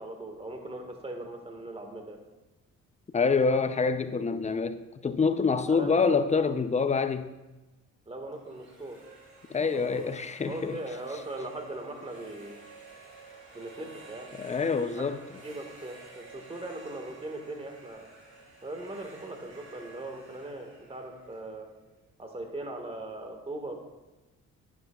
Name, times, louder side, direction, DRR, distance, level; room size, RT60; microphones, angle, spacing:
voice 1, 0.0-2.2 5.7-6.0 8.1-9.0 9.7-10.1 10.4-12.6 13.5-14.3 14.9-15.1 15.4-18.1 18.6-21.7 22.2-23.9, right 2 dB, 20° right, 1.6 m, -39 dB
voice 2, 3.1-7.3 9.5-10.8 14.4-15.2, left 4 dB, 25° left, 0.5 m, -26 dB
sound 1, 8.3-22.2, right 3 dB, 55° right, 3.1 m, -51 dB
11.0 x 9.4 x 2.4 m
cardioid pair, 90°, 30 cm